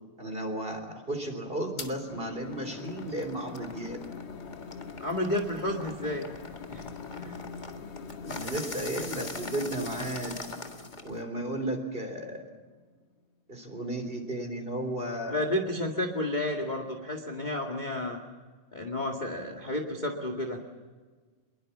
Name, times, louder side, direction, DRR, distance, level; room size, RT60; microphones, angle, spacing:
voice 1, 0.2-4.0 8.2-10.4 11.0-12.4 13.5-15.5, right 1 dB, 15° right, 5 dB, 3.5 m, -34 dB
sound 1, 1.8-1.9 2.4-11.2, left 2 dB, 40° left, 0.6 m, -43 dB
sound 2, 2.1-13.2, left 6 dB, 60° left, 2.8 m, -44 dB
voice 2, 5.0-6.2 6.7-7.4 15.3-18.2 18.7-20.6, left 1 dB, 20° left, 3 dB, 1.4 m, -31 dB
25.5 x 22.5 x 7.4 m, 1.4 s
omnidirectional pair, 3.8 m